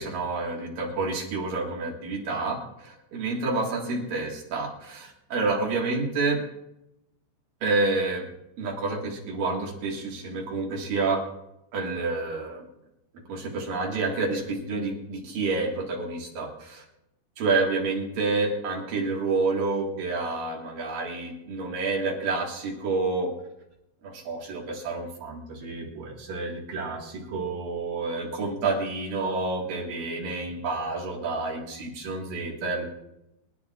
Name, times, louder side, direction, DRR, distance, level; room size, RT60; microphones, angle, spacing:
voice 1, 0.0-6.4 7.6-8.3 8.6-11.2 11.7-12.6 13.3-16.8 17.4-23.3 24.0-32.8, right 3 dB, 60° right, -1 dB, 2.7 m, -29 dB
29.0 x 10.5 x 2.4 m, 0.87 s
omnidirectional pair, 5.9 m